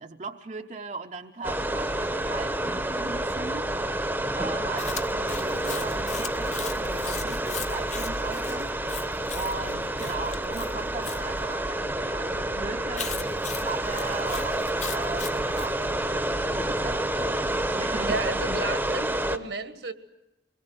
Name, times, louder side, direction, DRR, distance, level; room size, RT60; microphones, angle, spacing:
voice 1, 0.0-3.7 4.3-8.7 9.3-17.5 17.8-18.2, right 4 dB, 40° right, 5 dB, 0.8 m, -38 dB
sound 1, 1.4-19.4, right 1 dB, 10° right, 0.9 m, -29 dB
Chewing mastication, 4.8-11.2 12.9-15.7, left 9 dB, 40° left, 0.9 m, -39 dB
voice 2, 18.1-19.9, right 3 dB, 75° right, 10 dB, 1.6 m, -32 dB
25.0 x 22.0 x 7.9 m, 0.92 s
head